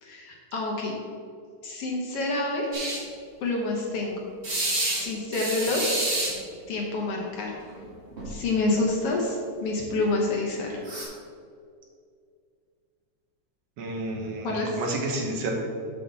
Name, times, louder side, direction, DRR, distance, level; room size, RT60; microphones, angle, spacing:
voice 1, 0.0-1.0 1.6-2.7 3.4-4.2 5.0-5.8 6.7-7.5 8.3-10.8 14.4-14.8, left 2 dB, 60° left, -1 dB, 1.7 m, -28 dB
sound 1, 2.7-3.0 4.4-5.0 5.3-6.3 7.7-7.9 8.2-8.3 10.8-11.0, right 1 dB, 25° right, 1.7 m, -28 dB
voice 2, 13.8-15.5, right 2 dB, 65° right, 0 dB, 1.9 m, -31 dB
6.5 x 5.4 x 6.7 m, 2.3 s
omnidirectional pair, 3.4 m